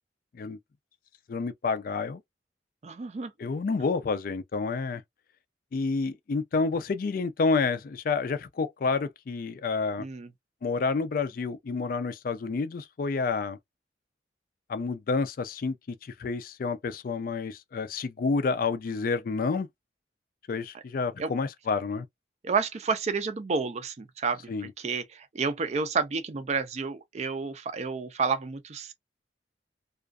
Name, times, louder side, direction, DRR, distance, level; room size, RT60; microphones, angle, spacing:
voice 1, 1.3-2.2 3.4-5.0 5.7-10.1 10.6-13.6 14.7-19.7 20.5-22.1 24.5-24.7, left 4 dB, 50° left, 0.4 m, -29 dB
voice 2, 2.8-3.3 10.0-10.3 21.2-21.3 22.4-28.9, right 5 dB, 40° right, 0.4 m, -30 dB
2.4 x 2.3 x 2.3 m
head